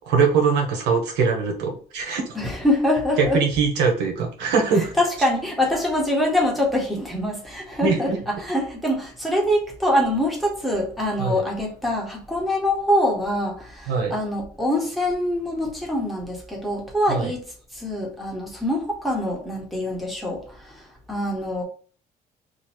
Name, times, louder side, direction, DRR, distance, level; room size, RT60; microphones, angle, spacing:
voice 1, 0.0-2.2 3.2-4.9 7.8-8.2 11.2-11.4 13.9-14.1 17.1-17.3, right 5 dB, 90° right, 2 dB, 1.1 m, -22 dB
voice 2, 2.3-3.4 4.8-17.4 17.7-20.8 21.1-21.6, left 1 dB, ahead, -1 dB, 1.3 m, -24 dB
3.1 x 2.5 x 4.3 m, 0.41 s
cardioid pair, 110°, 17 cm